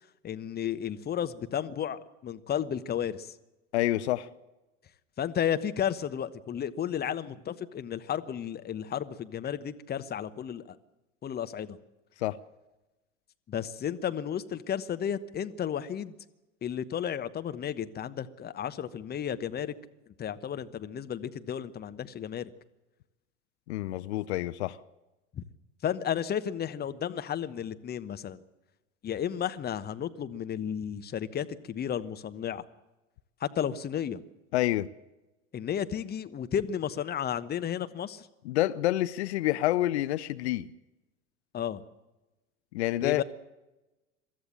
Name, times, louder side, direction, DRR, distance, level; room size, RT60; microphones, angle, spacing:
voice 1, 0.2-3.3 5.2-10.8 11.2-11.8 13.5-16.1 16.6-19.7 20.2-22.5 25.3-25.4 25.8-28.4 29.0-32.6 33.4-34.2 35.5-38.3 41.5-41.8 43.0-43.2, left 9 dB, 25° left, 1.1 m, -33 dB
voice 2, 3.7-4.3 12.2-12.4 23.7-24.8 34.5-34.9 38.4-40.7 42.7-43.2, left 15 dB, 60° left, 0.7 m, -28 dB
23.0 x 13.5 x 8.7 m
figure-of-eight pair, 80°, 37 cm